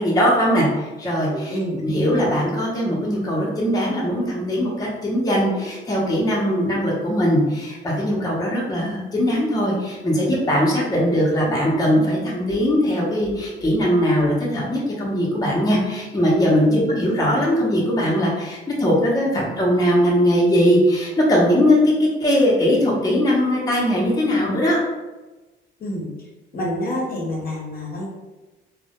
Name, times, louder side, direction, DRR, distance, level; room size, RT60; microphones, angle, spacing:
voice 1, 0.0-24.8, equal, 20° left, -4 dB, 0.6 m, -20 dB
voice 2, 1.3-1.8 16.7-16.9 19.3-19.4 25.8-26.1 26.5-28.1, equal, 50° left, -2 dB, 0.7 m, -27 dB
2.2 x 2.0 x 2.8 m, 1.1 s
cardioid pair, 90°, 20 cm